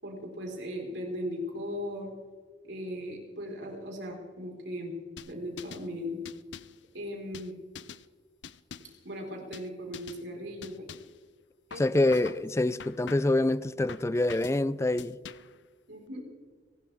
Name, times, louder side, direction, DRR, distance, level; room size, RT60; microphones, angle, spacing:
voice 1, 0.0-2.1 2.6-4.9 5.3-6.2 6.9-7.5 9.0-10.8 11.7-12.1 15.9-16.2, equal, 85° right, 4.7 m, -38 dB
sound 1, 5.2-5.9 6.3-6.8 7.3-8.1 8.4-9.0 9.5-9.7 9.9-10.2 10.6-11.2 11.7-12.4 12.8-13.4 13.9-14.6 15.0-15.6, left 6 dB, 85° left, 0.6 m, -45 dB
voice 2, 11.8-15.2, left 2 dB, 15° left, 0.4 m, -26 dB
30.0 x 12.5 x 3.6 m
head